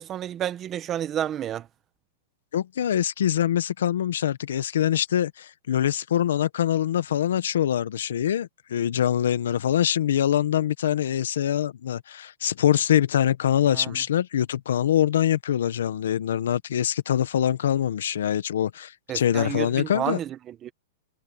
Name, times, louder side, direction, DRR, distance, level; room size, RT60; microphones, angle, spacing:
voice 1, 0.0-1.7 13.7-13.9 19.1-20.7, right 10 dB, 25° right, 1.2 m, -30 dB
voice 2, 2.5-20.2, left 10 dB, 80° left, 1.2 m, -24 dB
hypercardioid pair, 145°, 0 cm